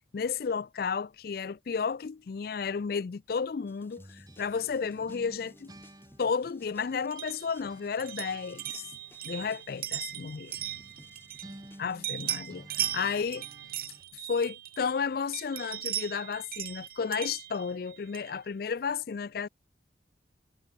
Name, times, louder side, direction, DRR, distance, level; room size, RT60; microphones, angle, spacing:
voice 1, 0.1-5.7 6.2-8.9 9.2-10.5 11.8-13.5 14.3-19.5, left 5 dB, 55° left, 0.4 m, -32 dB
sound 1, 3.7-12.5, left 1 dB, 10° left, 3.6 m, -59 dB
sound 2, 4.0-7.4 7.7-14.1, right 1 dB, 20° right, 6.0 m, -53 dB
sound 3, 7.1-11.7 12.0-15.0 15.3-18.4, right 12 dB, 50° right, 1.5 m, -38 dB
head